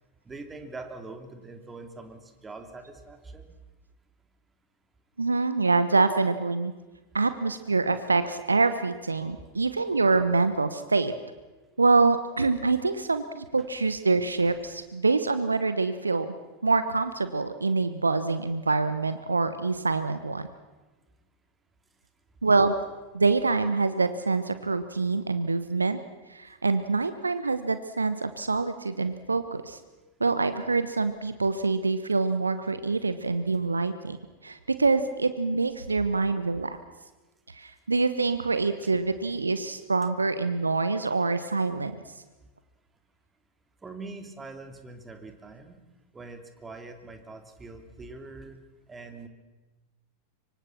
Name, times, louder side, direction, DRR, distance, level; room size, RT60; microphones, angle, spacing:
voice 1, 0.2-3.5 43.8-45.8 46.1-48.6 48.9-49.3, right 3 dB, 15° right, 6 dB, 3.0 m, -43 dB
voice 2, 5.2-6.7 7.1-11.1 11.8-16.3 16.6-20.5 22.4-22.7 23.1-26.0 26.3-29.8 30.2-34.2 34.4-36.8 37.5-41.9, right 3 dB, 80° right, 12 dB, 1.1 m, -25 dB
25.5 x 24.5 x 6.1 m, 1.2 s
figure-of-eight pair, 90°, 0 cm